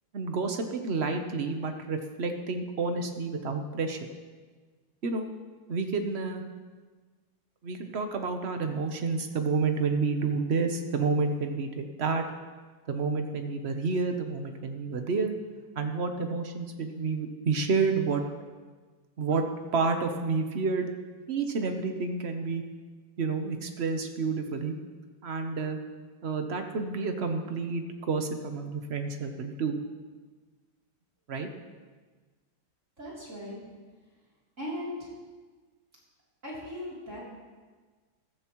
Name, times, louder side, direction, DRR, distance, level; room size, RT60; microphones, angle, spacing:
voice 1, 0.1-4.1 5.0-5.3 5.7-6.4 7.6-12.2 12.9-15.4 15.8-18.2 19.2-19.4 19.7-20.9 21.3-22.6 23.2-24.7 25.2-25.8 26.2-29.8 31.3-31.5, right 4 dB, 50° right, 5 dB, 0.7 m, -29 dB
voice 2, 33.0-33.6 34.6-35.0 36.4-37.2, left 1 dB, 35° right, -7 dB, 3.5 m, -38 dB
15.5 x 13.0 x 3.1 m, 1.4 s
omnidirectional pair, 2.2 m